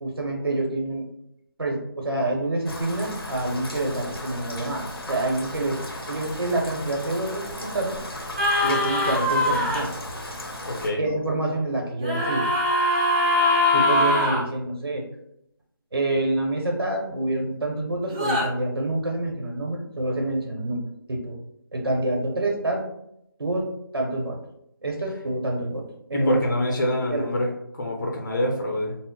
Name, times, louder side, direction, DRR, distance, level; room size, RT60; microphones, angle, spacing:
voice 1, 0.0-1.1 1.6-5.8 6.1-8.0 8.6-9.9 11.0-12.5 13.7-15.0 15.9-20.8 21.1-21.4 21.7-22.8 23.4-23.6 23.9-24.4 24.8-25.8 26.1-26.4 27.1-27.3, right 2 dB, 80° right, 0 dB, 0.8 m, -27 dB
Rain, 2.7-10.9, left 1 dB, 90° left, 0.7 m, -36 dB
sound 1, 8.4-9.8 12.0-14.4 18.1-18.5, left 1 dB, 20° right, 0.4 m, -22 dB
voice 2, 10.6-11.0 26.1-29.0, left 1 dB, 50° left, 0 dB, 0.6 m, -26 dB
2.1 x 2.0 x 3.7 m, 0.78 s
figure-of-eight pair, 165°, 12 cm